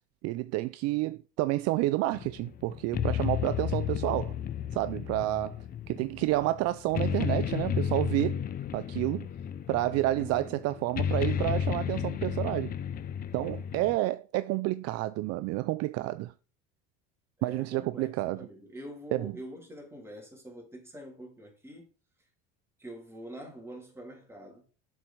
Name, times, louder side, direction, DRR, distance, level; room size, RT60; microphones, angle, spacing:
voice 1, 0.2-4.4 4.7-5.6 5.9-8.4 8.7-9.3 9.7-12.7 13.3-16.3 17.4-18.5 19.1-19.3, right 17 dB, 55° right, 0.4 m, -29 dB
sound 1, 2.1-14.0, left 8 dB, 30° left, 0.5 m, -33 dB
voice 2, 10.2-10.5 17.4-21.9 22.8-24.6, equal, 10° right, 3.0 m, -45 dB
7.4 x 4.7 x 5.4 m
cardioid pair, 135°, 30 cm